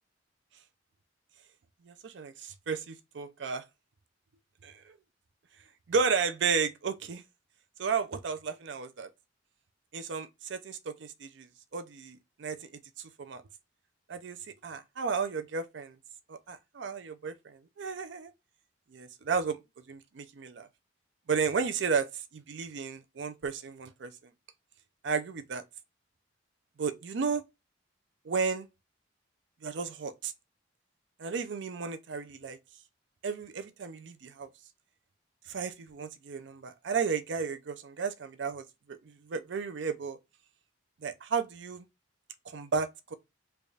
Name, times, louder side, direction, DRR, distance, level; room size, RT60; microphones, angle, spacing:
voice 1, 1.8-3.6 4.6-5.0 5.9-7.2 7.8-9.1 9.9-13.4 14.1-16.0 16.3-18.3 18.9-19.6 19.9-20.7 21.3-24.1 25.0-25.6 26.8-27.4 28.2-28.7 29.6-30.3 31.2-32.6 33.2-34.5 35.5-40.2 41.0-41.9 42.5-43.1, right 5 dB, 65° right, 0.4 m, -33 dB
3.3 x 2.4 x 3.9 m
head